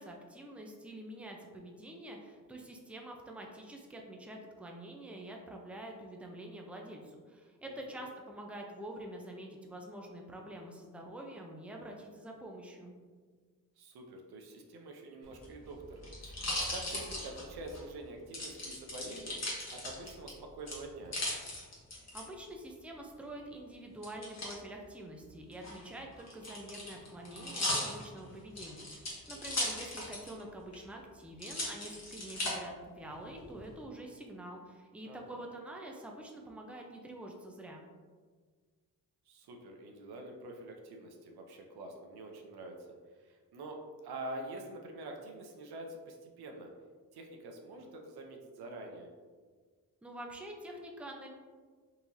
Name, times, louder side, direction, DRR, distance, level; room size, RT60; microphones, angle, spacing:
voice 1, 0.0-12.9 22.1-37.8 50.0-51.3, right 1 dB, 5° right, 1 dB, 0.5 m, -46 dB
voice 2, 7.6-8.1 13.8-19.4 19.7-21.2 29.3-29.6 35.0-35.4 39.3-42.9 43.1-43.8 44.0-46.7 47.1-49.1, right 2 dB, 80° right, 2 dB, 0.6 m, -46 dB
sound 1, 15.3-17.8 18.3-20.3 20.7-22.2 24.0-24.6 25.5-30.4 30.7-30.8 31.4-32.5 33.1-33.7, left 1 dB, 45° left, 1.2 m, -37 dB
3.9 x 2.9 x 2.6 m, 1.5 s
cardioid pair, 60°, 37 cm